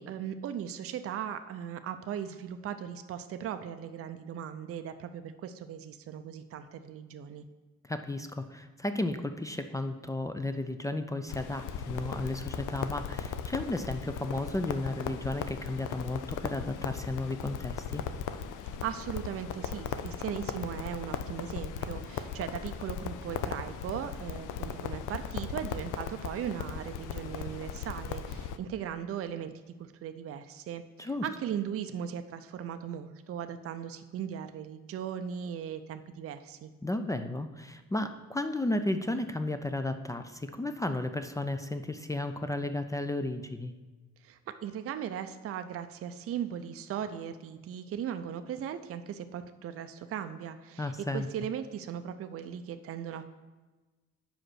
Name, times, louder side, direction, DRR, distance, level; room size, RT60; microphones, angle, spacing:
voice 1, 0.0-7.4 18.8-29.5 29.8-30.8 31.2-36.7 44.2-53.2, right 9 dB, 50° right, 9 dB, 0.5 m, -38 dB
voice 2, 7.9-18.0 31.0-31.3 36.8-43.7 50.8-51.3, left 2 dB, 10° left, 8 dB, 0.4 m, -33 dB
Crackle, 11.3-28.6, left 7 dB, 90° left, 0.5 m, -38 dB
5.1 x 5.0 x 6.2 m, 1.3 s
cardioid pair, 90°, 30 cm